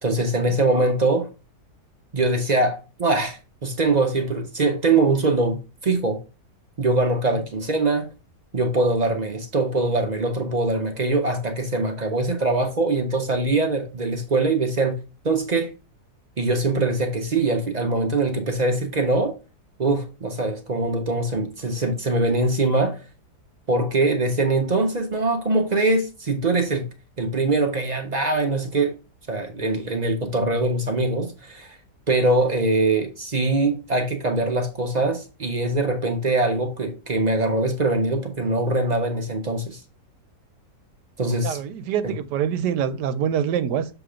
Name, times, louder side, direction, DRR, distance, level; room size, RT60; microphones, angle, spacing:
voice 1, 0.0-1.3 2.1-5.6 5.8-6.2 6.8-8.1 8.5-15.0 15.2-15.7 16.4-19.3 19.8-23.0 23.7-26.9 27.2-28.9 29.3-31.8 32.1-39.8 41.2-41.6 42.0-42.1, right 2 dB, 55° right, 0.4 m, -22 dB
voice 2, 41.4-43.9, right 8 dB, 85° right, 1.2 m, -25 dB
7.0 x 2.9 x 5.0 m
omnidirectional pair, 1.8 m